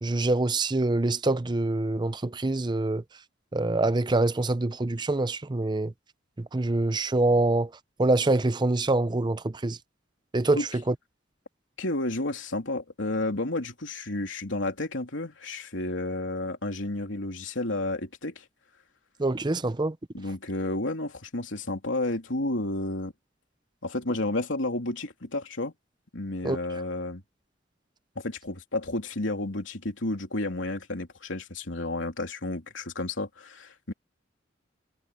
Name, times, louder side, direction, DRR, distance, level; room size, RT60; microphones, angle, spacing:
voice 1, 0.0-3.0 3.5-5.9 6.5-7.7 8.0-9.8 10.3-10.6 10.9-11.0 19.2-19.9 26.4-26.6, right 2 dB, 25° right, 0.5 m, -25 dB
voice 2, 11.8-18.4 20.1-23.1 23.8-25.7 26.1-27.2 28.1-33.9, left 2 dB, 80° left, 3.2 m, -31 dB
head